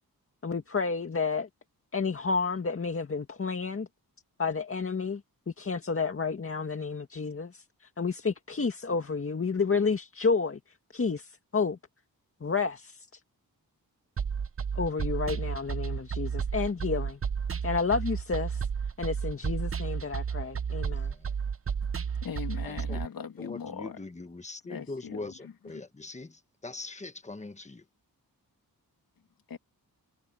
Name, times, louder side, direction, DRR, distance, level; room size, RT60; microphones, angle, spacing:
voice 1, 0.4-1.5 1.9-3.9 4.4-5.2 5.5-10.6 10.9-11.8 12.4-13.2 14.8-17.2 17.6-18.7 19.0-21.1, left 4 dB, 35° left, 2.0 m, -30 dB
sound 1, 14.2-23.1, right 6 dB, 35° right, 0.8 m, -32 dB
voice 2, 20.9-21.3 22.7-23.0 23.4-27.8, left 3 dB, 20° left, 1.4 m, -42 dB
voice 3, 22.2-24.0 24.7-25.8 29.5-29.6, left 6 dB, 70° left, 2.6 m, -40 dB
wide cardioid pair, 115°, 37 cm